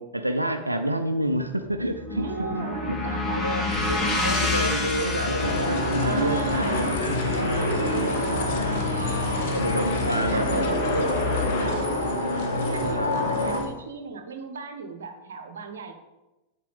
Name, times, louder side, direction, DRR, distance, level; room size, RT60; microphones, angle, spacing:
voice 1, 0.0-2.7 3.4-3.6 3.9-4.0 4.2-8.2 8.5-8.7 9.5-11.5 12.4-12.5 13.0-13.1, right 1 dB, 85° right, 8 dB, 0.4 m, -29 dB
sound 1, 1.5-9.6, left 3 dB, 25° left, 1.7 m, -30 dB
voice 2, 2.2-4.8 6.0-7.0 7.5-11.1 11.5-12.1 12.3-15.9, right 5 dB, 65° right, 7 dB, 0.9 m, -37 dB
sound 2, 3.7-13.7, left 5 dB, 50° left, 1.2 m, -34 dB
sound 3, 5.4-13.6, left 1 dB, 90° left, 1.3 m, -26 dB
7.7 x 7.4 x 3.5 m, 1.1 s
figure-of-eight pair, 90°, 0 cm